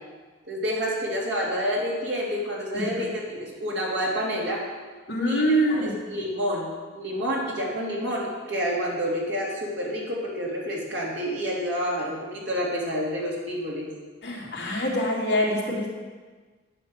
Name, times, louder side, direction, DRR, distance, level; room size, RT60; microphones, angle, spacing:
voice 1, 0.5-4.6 5.2-13.9, equal, 60° right, -4 dB, 3.2 m, -29 dB
voice 2, 5.1-5.9 14.2-15.9, equal, 55° left, -4 dB, 3.0 m, -24 dB
10.0 x 8.6 x 7.4 m, 1.4 s
head